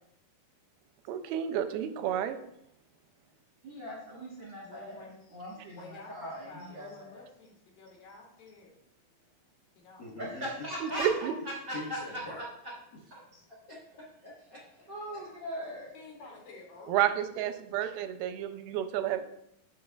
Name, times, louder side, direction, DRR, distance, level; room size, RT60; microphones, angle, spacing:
voice 1, 1.1-2.4 10.8-11.3 16.9-19.3, right 10 dB, 90° right, 9 dB, 2.5 m, -30 dB
voice 2, 3.6-5.1 5.3-7.2 10.2-11.1 11.7-12.0 13.1-13.4 14.9-15.9, equal, 50° right, -5 dB, 1.5 m, -40 dB
voice 3, 4.6-8.8 9.8-10.2 10.8-11.4 15.9-17.0, left 3 dB, 70° left, -1 dB, 3.2 m, -51 dB
voice 4, 10.0-10.5 11.7-12.4 12.9-13.0 13.7-15.3, left 2 dB, 85° left, -5 dB, 0.9 m, -45 dB
10.5 x 6.4 x 2.4 m, 0.78 s
omnidirectional pair, 4.3 m